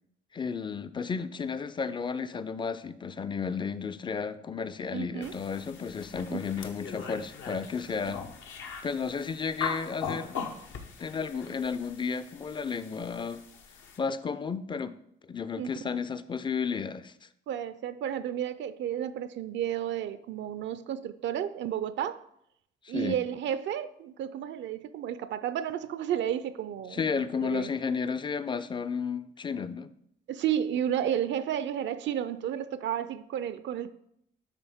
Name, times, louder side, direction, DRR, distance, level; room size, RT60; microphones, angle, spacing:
voice 1, 0.3-8.2 8.8-10.4 11.0-13.4 14.0-14.9 15.3-17.1 22.8-23.2 26.9-29.9, left 5 dB, 25° left, 0.4 m, -33 dB
voice 2, 4.9-5.3 6.3-6.4 8.1-8.2 15.6-15.7 17.5-22.2 22.9-27.7 30.3-33.9, right 10 dB, 65° right, 0.4 m, -32 dB
sound 1, 5.2-14.0, left 6 dB, 75° left, 0.9 m, -41 dB
9.8 x 3.8 x 3.5 m
cardioid pair, 90°, 20 cm